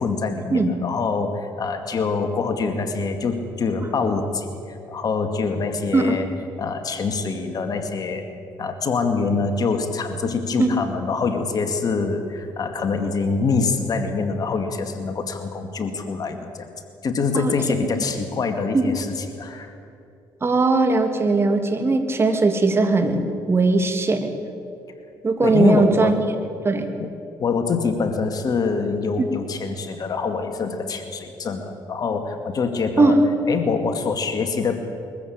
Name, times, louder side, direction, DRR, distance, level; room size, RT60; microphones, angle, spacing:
voice 1, 0.0-6.3 6.6-8.2 8.6-16.7 17.0-19.7 25.4-26.2 27.0-27.1 27.4-33.2 33.5-34.8, left 4 dB, 50° left, 6 dB, 2.2 m, -25 dB
voice 2, 20.4-23.2 23.5-24.3 25.2-26.2 26.6-26.9 33.0-33.2, right 3 dB, 30° right, 5 dB, 2.7 m, -19 dB
22.0 x 14.5 x 8.8 m, 2.5 s
supercardioid pair, 75°, 9 cm